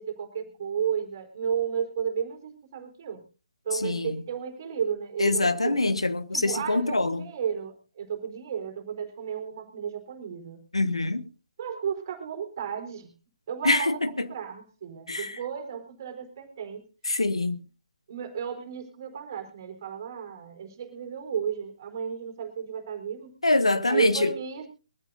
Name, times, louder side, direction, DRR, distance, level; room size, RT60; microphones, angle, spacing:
voice 1, 0.0-3.2 3.7-5.8 6.3-10.6 11.6-13.1 13.5-16.9 18.1-23.3 23.9-24.7, right 7 dB, 40° right, 4.0 m, -33 dB
voice 2, 3.7-4.2 5.2-7.3 10.7-11.2 13.6-14.3 15.1-15.4 17.0-17.6 23.4-24.3, left 2 dB, 70° left, 1.5 m, -25 dB
23.0 x 14.5 x 2.6 m
figure-of-eight pair, 140°, 3 cm